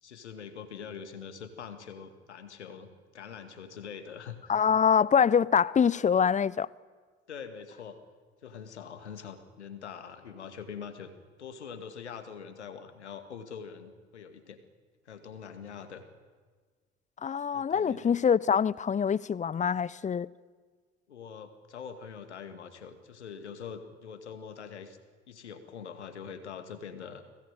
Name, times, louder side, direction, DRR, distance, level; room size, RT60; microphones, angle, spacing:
voice 1, 0.0-2.9 3.1-4.7 7.3-8.0 8.4-11.1 11.4-14.6 15.1-16.0 17.5-18.1 21.1-25.0 25.3-27.2, left 7 dB, 80° left, 2.2 m, -44 dB
voice 2, 4.5-6.7 17.2-20.3, left 7 dB, 20° left, 0.7 m, -25 dB
30.0 x 20.0 x 9.2 m
figure-of-eight pair, 55°, 34 cm